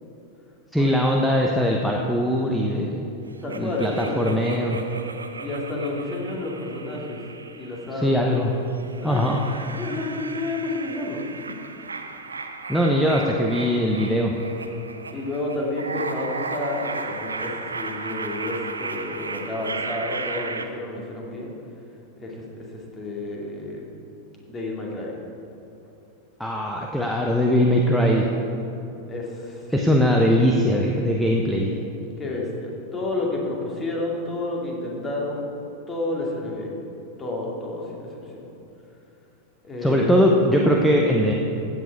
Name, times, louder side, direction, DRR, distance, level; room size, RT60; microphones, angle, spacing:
voice 1, 0.7-3.1 3.6-4.8 8.0-8.5 9.0-9.4 12.7-14.3 26.4-28.3 29.7-31.7 39.8-41.3, equal, ahead, -1 dB, 0.9 m, -21 dB
voice 2, 3.4-4.2 5.4-7.2 7.5-8.3 9.0-9.3 9.7-11.6 15.1-21.6 22.2-23.8 24.5-25.1 29.1-30.0 32.2-35.5 35.9-36.8 37.2-38.5 39.6-40.2, left 2 dB, 20° left, -2 dB, 2.5 m, -30 dB
sound 1, 3.5-8.2 8.7-20.7, right 4 dB, 75° right, 0.7 m, -35 dB
15.0 x 8.3 x 4.7 m, 2.9 s
figure-of-eight pair, 90°, 0 cm